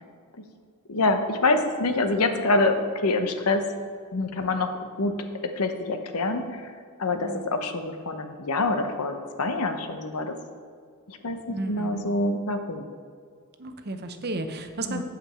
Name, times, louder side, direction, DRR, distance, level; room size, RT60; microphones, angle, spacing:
voice 1, 0.9-2.8 3.0-3.6 4.1-4.7 5.0-5.1 5.6-6.7 7.0-10.3 11.1-12.8 14.9-15.0, left 2 dB, 85° left, 7 dB, 0.9 m, -26 dB
voice 2, 11.5-12.0 13.6-15.0, right 2 dB, 45° right, 7 dB, 0.8 m, -33 dB
8.3 x 5.2 x 7.5 m, 2.1 s
head